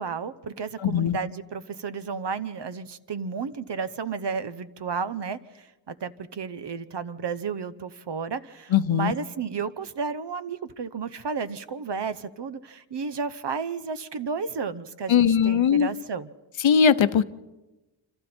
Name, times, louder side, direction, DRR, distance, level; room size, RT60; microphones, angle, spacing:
voice 1, 0.0-16.3, right 5 dB, 60° right, 13 dB, 0.9 m, -32 dB
voice 2, 0.8-1.2 8.7-9.1 15.1-15.9 16.6-17.2, left 7 dB, 70° left, 14 dB, 0.8 m, -20 dB
27.0 x 26.5 x 4.4 m, 1.1 s
wide cardioid pair, 105°, 47 cm